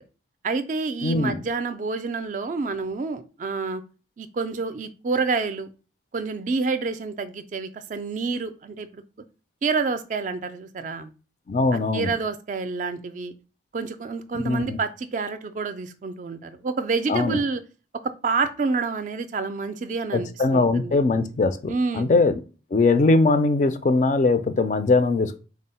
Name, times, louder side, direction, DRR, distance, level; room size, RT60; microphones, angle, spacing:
voice 1, 0.4-3.8 4.2-5.7 6.1-9.0 9.6-11.1 11.9-13.3 13.7-17.6 18.2-21.0 21.7-22.1, right 4 dB, 40° right, 10 dB, 0.3 m, -28 dB
voice 2, 1.0-1.4 11.5-12.1 14.4-14.8 17.1-17.4 20.1-22.3 22.7-25.4, left 3 dB, 40° left, 10 dB, 0.3 m, -21 dB
3.6 x 2.0 x 4.1 m, 0.34 s
head